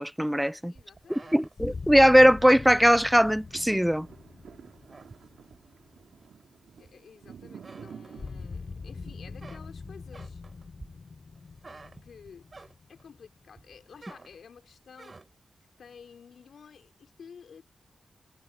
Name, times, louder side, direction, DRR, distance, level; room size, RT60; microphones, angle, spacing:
voice 1, 0.0-0.7 1.3-4.1, equal, 5° right, 0.3 m, -20 dB
voice 2, 0.7-1.5 6.8-10.4 12.0-15.2 15.8-17.6, left 6 dB, 75° left, 3.6 m, -51 dB
sound 1, 0.7-4.2 4.6-5.7 6.2-7.2 7.5-8.8 9.1-13.1 13.5-15.5, right 3 dB, 45° right, 2.8 m, -51 dB
sound 2, 1.6-6.5 8.2-13.8, left 4 dB, 55° left, 4.5 m, -43 dB
sound 3, 3.4-11.4 11.9-12.0, right 7 dB, 75° right, 2.0 m, -51 dB
supercardioid pair, 45°, 0 cm